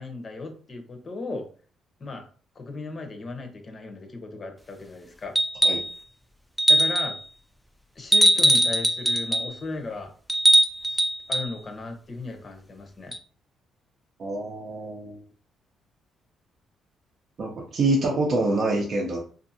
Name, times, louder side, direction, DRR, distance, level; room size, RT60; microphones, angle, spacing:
voice 1, 0.0-1.4 2.0-2.2 2.6-5.4 6.7-7.2 8.0-10.1 10.9-11.0 11.3-13.1, left 3 dB, 40° left, 5 dB, 0.7 m, -36 dB
sound 1, 5.4-5.9 6.6-7.2 8.1-9.5 10.3-11.5 13.1-13.2, right 1 dB, ahead, 0.3 m, -20 dB
voice 2, 14.2-15.2 17.4-19.2, right 2 dB, 55° right, -1 dB, 0.5 m, -26 dB
2.5 x 2.4 x 2.7 m, 0.41 s
cardioid pair, 90°, 0 cm